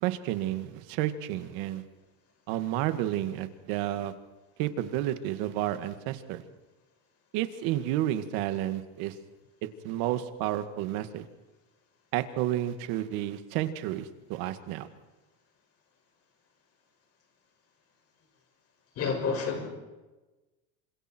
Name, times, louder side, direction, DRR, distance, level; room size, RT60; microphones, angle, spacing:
voice 1, 0.0-1.8 2.5-4.1 4.6-6.4 7.3-9.2 9.8-11.3 12.1-14.9, right 13 dB, 60° right, 10 dB, 2.1 m, -31 dB
voice 2, 19.0-19.7, left 5 dB, 35° left, 4 dB, 6.3 m, -29 dB
29.0 x 26.0 x 4.6 m, 1.1 s
cardioid pair, 175°, 40 cm